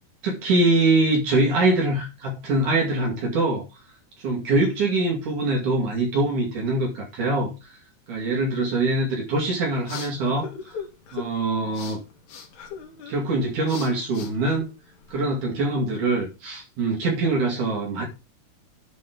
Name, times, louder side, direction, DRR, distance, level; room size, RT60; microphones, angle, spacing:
voice 1, 0.2-3.6 4.2-7.8 8.1-10.8 11.1-12.0 13.1-14.7 15.1-18.1, right 2 dB, 65° right, 3.8 m, -23 dB
sound 1, 9.5-15.3, left 6 dB, 65° left, 2.8 m, -40 dB
11.0 x 4.4 x 5.3 m
omnidirectional pair, 3.8 m